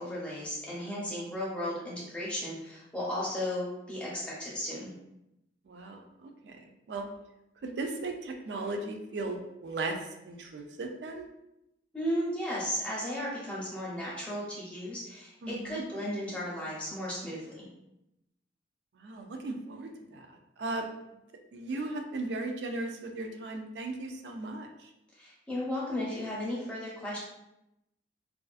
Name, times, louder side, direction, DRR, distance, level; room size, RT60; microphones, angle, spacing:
voice 1, 0.0-4.9 11.9-17.7 25.2-27.2, left 1 dB, 5° left, -7 dB, 0.6 m, -35 dB
voice 2, 5.7-7.1 7.6-11.3 15.4-15.8 18.9-20.9 21.5-24.9, right 2 dB, 70° right, 4 dB, 0.3 m, -37 dB
2.4 x 2.3 x 2.4 m, 0.87 s
head